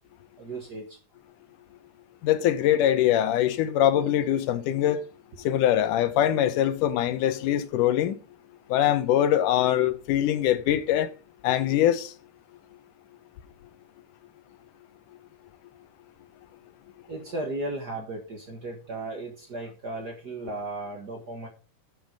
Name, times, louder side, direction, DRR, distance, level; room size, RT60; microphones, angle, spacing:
voice 1, 0.4-1.0 17.1-21.5, right 2 dB, 45° right, 1.4 m, -35 dB
voice 2, 2.2-5.0 5.4-8.2 8.7-11.1 11.4-12.1, left 11 dB, 85° left, 2.4 m, -23 dB
10.5 x 5.6 x 5.1 m
omnidirectional pair, 3.6 m